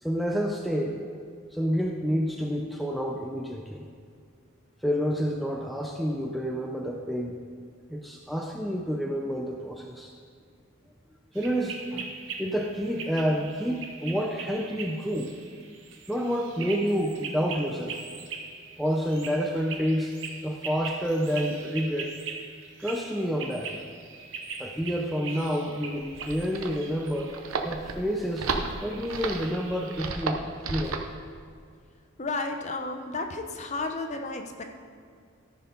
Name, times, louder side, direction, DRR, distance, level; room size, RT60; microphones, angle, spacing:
voice 1, 0.0-1.1 1.5-3.8 4.8-7.4 7.9-10.1 11.3-12.1 12.4-15.3 16.1-18.0 18.8-20.1 20.4-22.1 22.8-23.8 24.6-27.3 27.6-28.5 28.8-31.0, equal, ahead, 1 dB, 0.4 m, -29 dB
sound 1, 11.3-30.1, right 5 dB, 60° right, 1.0 m, -41 dB
sound 2, 25.9-31.1, right 4 dB, 90° right, 0.8 m, -33 dB
voice 2, 32.2-34.6, left 3 dB, 35° left, 5 dB, 0.7 m, -32 dB
13.5 x 4.6 x 5.3 m, 2.2 s
head